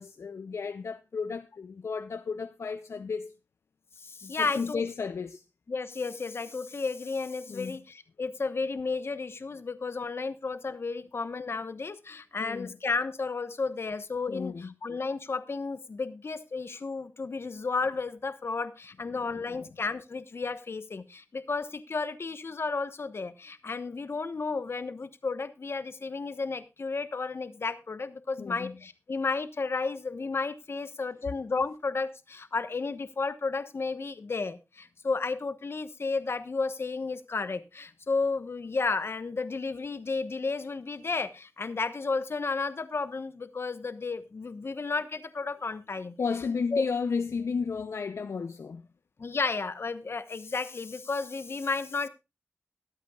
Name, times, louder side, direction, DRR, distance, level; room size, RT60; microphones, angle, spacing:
voice 1, 0.0-3.3 4.2-5.4 7.5-7.8 12.4-12.7 14.3-14.7 19.2-19.7 28.4-28.7 46.2-48.9, left 5 dB, 75° left, 0.6 m, -33 dB
voice 2, 4.0-4.8 5.7-46.2 46.7-46.9 49.2-52.1, left 4 dB, 60° left, 1.1 m, -32 dB
22.5 x 8.4 x 2.4 m
wide cardioid pair, 75°, 5 cm